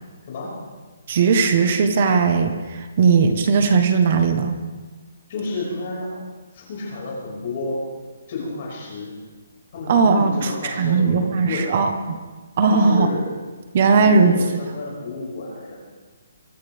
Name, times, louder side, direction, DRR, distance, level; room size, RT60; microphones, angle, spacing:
voice 1, 1.1-4.6 9.9-12.2 12.6-13.1 13.7-14.3, right 5 dB, 35° right, 7 dB, 1.2 m, -18 dB
voice 2, 5.3-6.1 6.5-7.8 8.3-9.1 9.7-11.8 12.7-13.3 13.8-15.7, left 2 dB, 35° left, -4 dB, 5.7 m, -30 dB
23.5 x 13.0 x 3.6 m, 1.3 s
hypercardioid pair, 170°, 0 cm